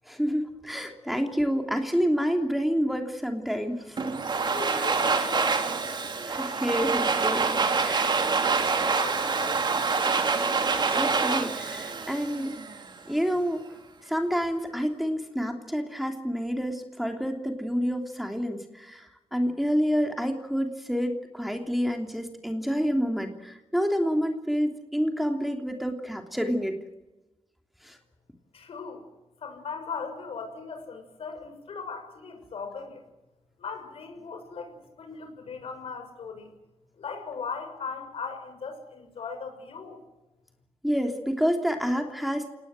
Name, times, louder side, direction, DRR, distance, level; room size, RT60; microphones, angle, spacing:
voice 1, 0.1-4.0 4.7-4.9 6.2-7.5 7.8-8.2 10.9-12.5 13.1-13.7 14.0-26.8 27.8-28.0 40.8-42.5, equal, ahead, 4 dB, 3.2 m, -28 dB
Domestic sounds home sounds, 4.0-12.9, right 4 dB, 45° right, 2.9 m, -26 dB
voice 2, 4.3-5.6 8.9-10.3 28.5-29.0 29.4-33.0 33.6-36.5 37.0-40.0, left 5 dB, 70° left, 6 dB, 6.3 m, -38 dB
28.5 x 19.0 x 7.7 m, 1.0 s
cardioid pair, 95°, 10 cm